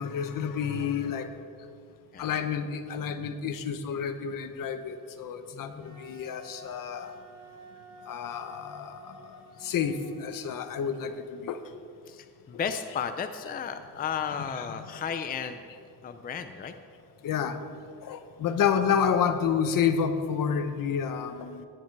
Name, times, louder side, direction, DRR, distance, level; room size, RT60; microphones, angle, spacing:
voice 1, 0.0-1.3 2.2-7.1 8.1-11.6 14.5-14.9 17.2-17.6 18.0-21.7, left 7 dB, 65° left, 9 dB, 1.0 m, -30 dB
voice 2, 5.5-6.0 12.1-15.6 16.0-16.7, left 7 dB, 25° left, 8 dB, 0.5 m, -34 dB
Wind instrument woodwind instrument, 5.8-11.3, left 1 dB, 60° right, 2.7 m, -49 dB
18.0 x 9.6 x 4.7 m, 2.4 s
cardioid pair, 175°, 36 cm